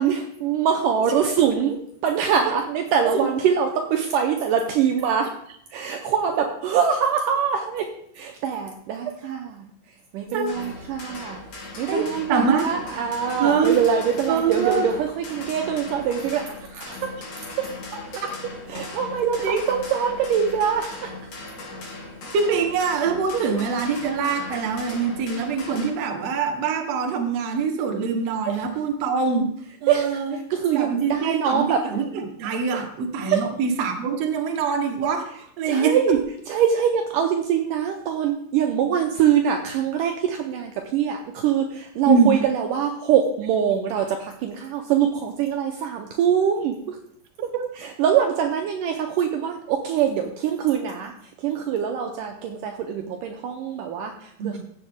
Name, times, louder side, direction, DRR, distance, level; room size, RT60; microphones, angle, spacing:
voice 1, 0.0-5.3 5.7-9.7 10.1-17.2 17.6-17.7 18.7-21.1 23.3-23.4 28.5-28.6 29.9-31.9 32.7-32.8 33.3-33.5 35.6-47.0 47.4-54.6, right 8 dB, 75° right, 3 dB, 2.2 m, -24 dB
sound 1, 10.5-25.9, left 2 dB, 60° left, 4.4 m, -38 dB
voice 2, 11.9-12.7 13.4-13.8 14.3-14.9 19.2-19.6 22.3-29.5 29.8-30.4 30.7-36.0 42.1-42.4 47.5-47.6 54.4-54.6, right 5 dB, 60° right, 3 dB, 1.9 m, -24 dB
15.0 x 6.8 x 3.6 m, 0.67 s
omnidirectional pair, 4.2 m